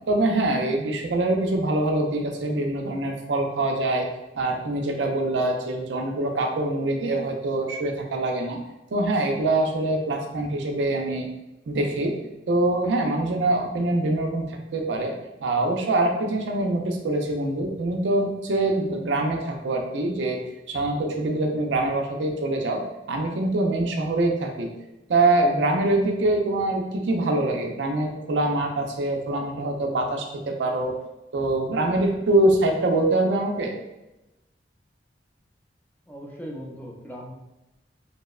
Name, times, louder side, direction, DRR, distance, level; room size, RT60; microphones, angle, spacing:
voice 1, 0.1-4.1 4.4-8.6 8.9-11.3 11.7-12.2 12.5-15.1 15.4-20.4 20.7-22.8 23.1-24.7 25.1-30.9 31.3-33.7, right 2 dB, 75° right, 2 dB, 0.4 m, -24 dB
voice 2, 36.1-37.4, equal, 10° left, -2 dB, 0.4 m, -38 dB
2.7 x 2.1 x 2.3 m, 0.97 s
head